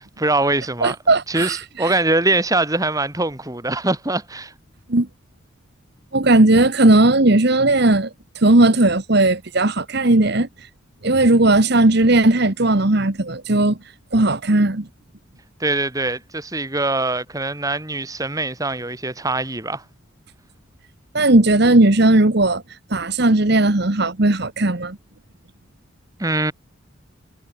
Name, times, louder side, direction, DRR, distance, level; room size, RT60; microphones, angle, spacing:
voice 1, 0.2-1.0 1.3-4.5 15.6-19.8 26.2-26.5, right 2 dB, 15° right, 2.1 m, -22 dB
voice 2, 0.8-1.9 4.9-5.1 6.1-8.1 8.3-10.5 11.0-13.8 14.1-14.9 21.1-22.6 22.9-25.0, right 2 dB, 55° right, 1.5 m, -16 dB
head